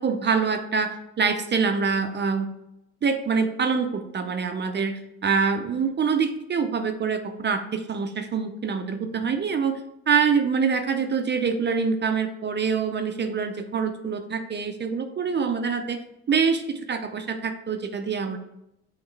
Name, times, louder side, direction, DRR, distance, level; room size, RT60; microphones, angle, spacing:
voice 1, 0.0-2.5 3.0-9.8 10.1-16.0 16.3-18.4, right 5 dB, 35° right, 7 dB, 0.5 m, -25 dB
3.7 x 3.1 x 4.6 m, 0.83 s
cardioid pair, 90°, 30 cm